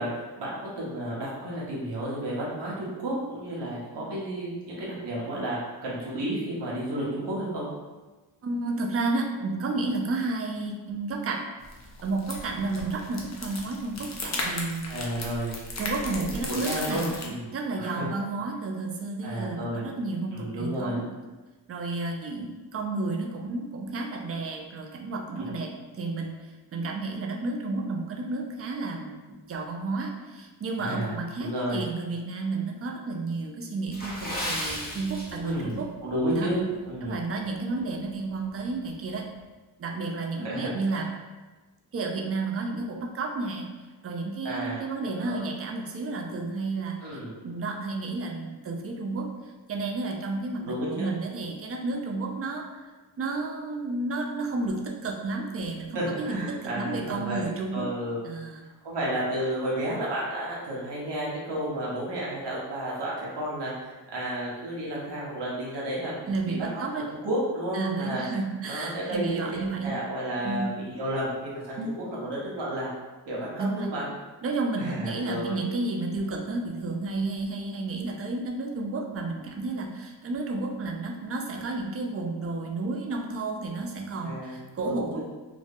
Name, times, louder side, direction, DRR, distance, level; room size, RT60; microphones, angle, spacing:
voice 1, 0.0-7.7 14.9-15.5 16.3-17.5 17.8-18.1 19.2-19.9 20.3-21.0 25.4-25.5 30.8-31.8 35.4-37.2 40.4-41.1 44.4-44.8 45.2-45.5 47.0-47.4 50.6-51.1 55.9-57.5 57.7-58.2 58.8-66.8 67.2-68.2 68.6-69.5 69.8-70.7 71.0-72.9 73.3-74.0 74.8-75.6 84.2-84.5 84.8-85.2, right 1 dB, 60° right, -6 dB, 0.9 m, -32 dB
voice 2, 8.4-11.5 12.0-15.1 15.8-17.1 17.5-21.0 21.7-29.2 29.5-35.9 36.3-36.5 37.0-39.3 39.8-41.1 41.9-43.7 44.0-49.3 49.7-52.9 53.2-57.9 58.2-58.6 66.3-67.1 67.7-70.0 70.4-70.7 71.8-72.0 73.6-73.9 74.4-85.2, right 3 dB, 35° right, 1 dB, 0.4 m, -31 dB
sound 1, 11.6-17.3, left 2 dB, 35° left, 0.5 m, -36 dB
Water / Splash splatter, 33.9-35.8 36.1-36.3 36.9-37.1 37.6-37.7, left 1 dB, 20° left, 0.9 m, -34 dB
2.2 x 2.1 x 2.7 m, 1.2 s
cardioid pair, 65°, 46 cm